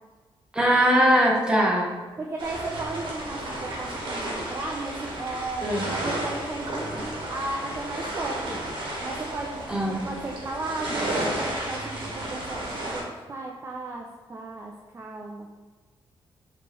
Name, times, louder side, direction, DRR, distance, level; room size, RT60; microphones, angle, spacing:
voice 1, 0.5-1.9 5.6-5.8 9.7-10.0, equal, 10° right, -2 dB, 0.8 m, -20 dB
voice 2, 2.2-3.4 3.7-8.6 9.0-11.1 11.4-13.0 13.3-15.5, right 2 dB, 25° right, 0 dB, 0.4 m, -35 dB
sound 1, 2.4-13.0, right 1 dB, 60° right, 1.1 m, -32 dB
4.2 x 3.1 x 3.0 m, 1.4 s
cardioid pair, 125°, 9 cm